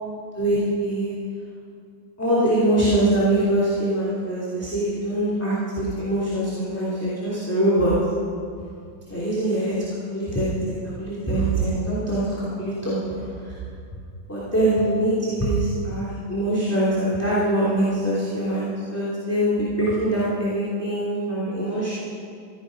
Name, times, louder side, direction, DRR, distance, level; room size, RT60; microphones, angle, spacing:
voice 1, 0.4-1.1 2.2-7.9 9.1-9.7 10.1-10.5 11.0-12.3 12.6-13.0 14.3-22.0, right 1 dB, 5° left, -9 dB, 3.0 m, -23 dB
16.5 x 14.0 x 5.3 m, 2.3 s
omnidirectional pair, 2.3 m